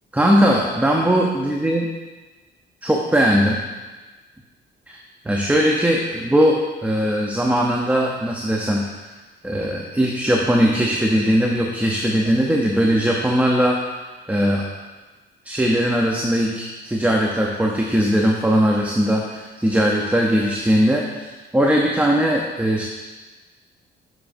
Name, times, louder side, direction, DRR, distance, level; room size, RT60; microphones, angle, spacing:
voice 1, 0.1-1.9 2.8-3.6 4.9-5.0 5.2-9.1 9.4-13.8 14.3-14.7 15.4-22.8, equal, 5° right, -1 dB, 0.6 m, -19 dB
7.0 x 6.1 x 2.6 m, 1.3 s
cardioid pair, 90°, 20 cm